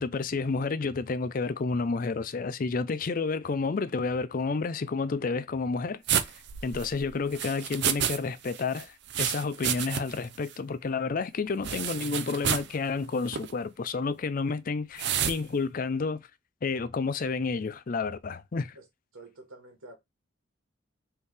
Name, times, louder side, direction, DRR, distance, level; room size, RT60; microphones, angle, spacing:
voice 1, 0.0-6.0 6.6-16.2 16.6-18.8, left 4 dB, 40° left, 0.4 m, -30 dB
sound 1, 6.1-8.2 8.5-10.3 10.5-10.6 11.6-12.7 13.3-13.5 15.0-15.4, right 9 dB, 55° right, 0.5 m, -30 dB
voice 2, 19.1-20.0, right 2 dB, 90° right, 1.9 m, -48 dB
4.4 x 3.3 x 3.5 m
head